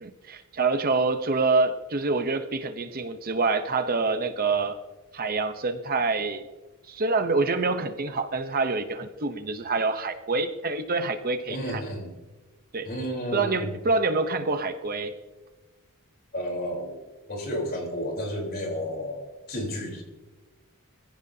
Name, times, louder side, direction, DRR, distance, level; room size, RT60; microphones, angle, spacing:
voice 1, 0.0-4.8 5.1-6.5 6.9-11.8 12.7-12.9 13.3-15.2, right 3 dB, 40° right, 8 dB, 0.9 m, -26 dB
voice 2, 11.5-12.1 12.9-13.7 16.3-17.0 17.3-20.0, equal, 45° left, 0 dB, 3.9 m, -32 dB
22.0 x 15.5 x 2.8 m, 1.2 s
head